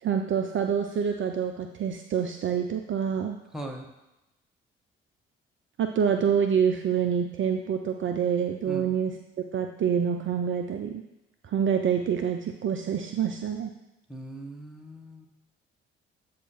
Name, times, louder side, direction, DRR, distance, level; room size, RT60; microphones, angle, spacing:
voice 1, 0.0-3.4 5.8-9.2 9.5-11.0 11.5-13.7, right 7 dB, 45° right, 5 dB, 0.5 m, -26 dB
voice 2, 3.5-3.9 8.7-9.0 14.1-15.3, right 1 dB, ahead, 0 dB, 1.3 m, -39 dB
8.1 x 2.9 x 5.5 m, 0.98 s
hypercardioid pair, 50°, 29 cm